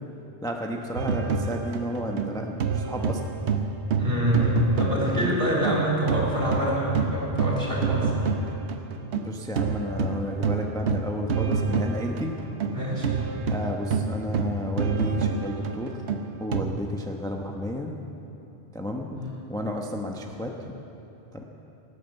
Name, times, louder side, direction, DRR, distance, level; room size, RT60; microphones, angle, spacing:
voice 1, 0.4-3.3 5.1-5.4 9.1-12.3 13.1-13.2 13.5-16.0 16.4-17.9 18.7-19.2 19.5-20.5 21.3-21.4, left 1 dB, 5° left, 1 dB, 0.9 m, -32 dB
sound 1, 1.0-5.8 6.1-16.6, right 5 dB, 90° right, 1.2 m, -27 dB
voice 2, 3.9-8.1 12.7-13.1 16.5-16.7 19.2-19.3, equal, 55° right, -5 dB, 3.8 m, -26 dB
18.5 x 9.5 x 8.0 m, 2.9 s
omnidirectional pair, 1.1 m